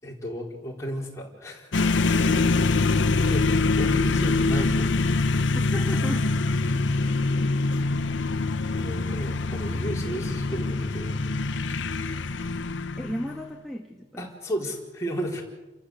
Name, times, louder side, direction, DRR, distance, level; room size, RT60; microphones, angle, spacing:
voice 1, 0.0-1.7 2.8-4.9 7.9-8.0 8.7-11.2 14.2-15.4, equal, 15° left, -3 dB, 4.5 m, -33 dB
sound 1, 1.7-13.5, left 3 dB, 80° left, 0.8 m, -24 dB
voice 2, 5.5-6.3 13.0-14.3, equal, ahead, -1 dB, 1.5 m, -34 dB
29.5 x 15.0 x 8.3 m, 1.1 s
head